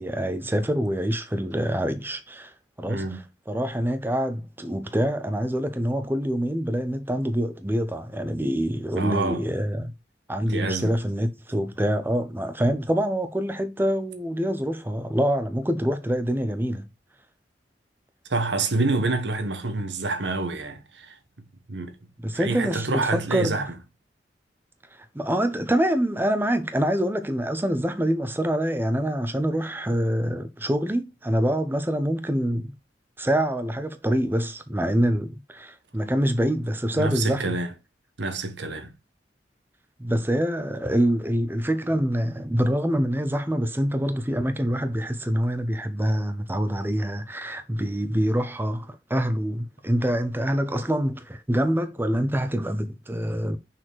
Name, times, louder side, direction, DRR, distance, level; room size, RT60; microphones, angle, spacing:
voice 1, 0.0-2.5 2.8-9.9 10.3-16.9 22.2-23.7 25.0-32.7 33.2-37.5 40.0-53.6, equal, 10° right, 0.7 m, -25 dB
voice 2, 2.9-3.2 9.0-9.4 10.5-11.0 18.3-21.2 21.7-21.9 22.3-23.7 36.9-37.7 38.2-38.9, right 3 dB, 80° right, 1.3 m, -27 dB
6.3 x 4.3 x 4.6 m
head